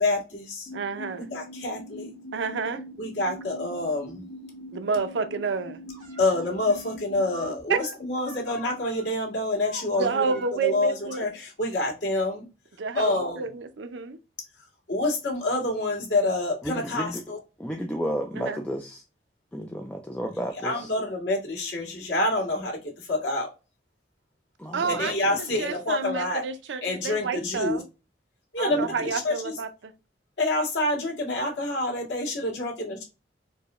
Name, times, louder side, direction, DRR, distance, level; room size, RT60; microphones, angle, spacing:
voice 1, 0.0-0.7 1.2-2.1 3.0-4.3 6.2-10.2 10.6-12.5 12.9-13.4 14.9-17.4 20.6-23.5 24.9-26.4 26.8-27.8 28.5-29.5 30.4-33.0, left 2 dB, 85° left, 1.8 m, -27 dB
sound 1, 0.7-7.5, equal, 65° left, 0.8 m, -43 dB
voice 2, 0.7-1.3 2.3-2.8 4.7-5.8 7.7-7.8 10.0-11.3 12.8-14.2 18.4-18.6 24.7-27.8 28.6-29.9, right 5 dB, 75° right, 0.5 m, -29 dB
sound 2, 5.9-7.0 7.3-9.1 9.4-10.5 11.0-11.3, right 1 dB, 50° right, 1.3 m, -44 dB
voice 3, 16.6-17.2 17.6-19.0 19.5-20.9 24.6-25.6 28.7-28.8, equal, 5° left, 0.4 m, -33 dB
4.5 x 2.1 x 2.9 m
head